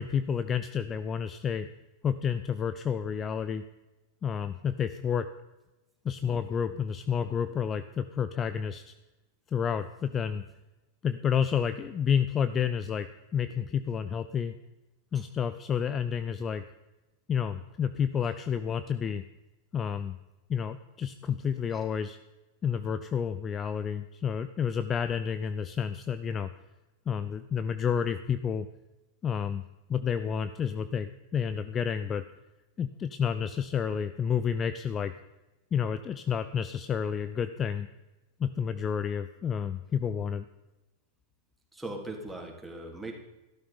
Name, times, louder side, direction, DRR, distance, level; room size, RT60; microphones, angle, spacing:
voice 1, 0.0-1.7 2.0-3.6 4.2-5.3 6.0-8.9 9.5-10.4 11.0-13.1 13.3-14.5 15.1-16.6 17.3-19.2 19.7-20.2 20.5-22.2 22.6-26.5 27.1-28.7 29.2-29.6 29.9-32.2 32.8-35.1 35.7-37.9 38.4-40.5, left 7 dB, 25° left, 11 dB, 0.6 m, -30 dB
voice 2, 41.7-43.1, right 2 dB, 5° right, 1 dB, 3.4 m, -39 dB
14.0 x 12.5 x 5.5 m, 1.0 s
figure-of-eight pair, 90°, 0 cm